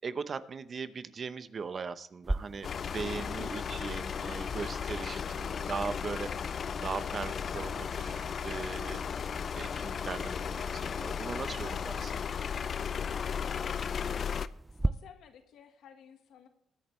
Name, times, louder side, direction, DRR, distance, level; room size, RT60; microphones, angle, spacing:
voice 1, 0.0-6.6 6.8-12.3, right 5 dB, 45° right, 13 dB, 0.8 m, -39 dB
sound 1, 2.2-14.9, right 2 dB, 10° right, 0.4 m, -42 dB
sound 2, 2.6-14.5, left 7 dB, 50° left, 0.4 m, -35 dB
voice 2, 3.2-3.7 4.2-4.4 5.3-5.7 10.8-11.2 13.4-14.2 14.7-16.5, left 7 dB, 75° left, 7 dB, 1.5 m, -53 dB
21.0 x 8.9 x 3.2 m, 0.75 s
cardioid pair, 90°, 0 cm